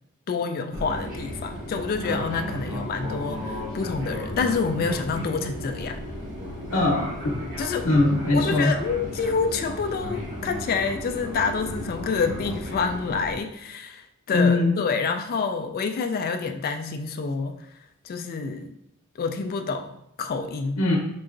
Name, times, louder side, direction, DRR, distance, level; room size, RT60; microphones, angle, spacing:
voice 1, 0.3-6.0 7.6-7.9 8.3-17.6 18.0-18.7 19.2-20.8, left 5 dB, 40° left, 6 dB, 0.3 m, -28 dB
Fixed-wing aircraft airplane, 0.7-13.4, equal, 35° right, 1.6 m, -34 dB
voice 2, 6.7-7.1 7.8-8.7 14.3-14.8 20.8-21.0, left 2 dB, 70° left, -1 dB, 0.8 m, -20 dB
5.3 x 3.8 x 2.5 m, 0.76 s
head